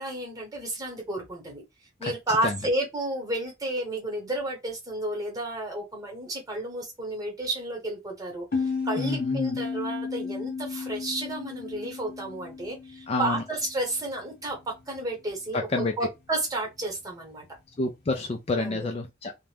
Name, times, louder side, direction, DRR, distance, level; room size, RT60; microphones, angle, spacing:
voice 1, 0.0-1.6 2.0-8.5 8.8-17.4 18.6-18.9, right 1 dB, 20° right, 1.0 m, -32 dB
sound 1, 8.5-13.8, left 5 dB, 55° left, 1.0 m, -33 dB
voice 2, 9.0-9.6 13.1-13.4 15.5-15.9 17.8-19.3, left 3 dB, 30° left, 0.3 m, -28 dB
2.4 x 2.1 x 3.2 m
head